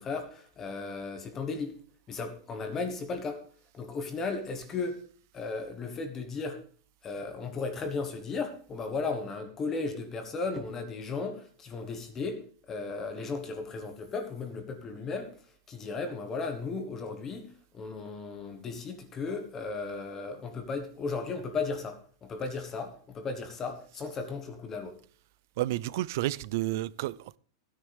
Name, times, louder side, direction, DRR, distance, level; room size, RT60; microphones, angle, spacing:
voice 1, 0.0-1.8 2.1-3.4 3.7-5.0 5.3-6.6 7.0-12.4 12.7-15.3 15.7-25.0, left 4 dB, 15° left, 1.3 m, -35 dB
voice 2, 25.6-27.4, right 15 dB, 45° right, 0.4 m, -31 dB
15.5 x 10.0 x 3.4 m
supercardioid pair, 180°, 2 cm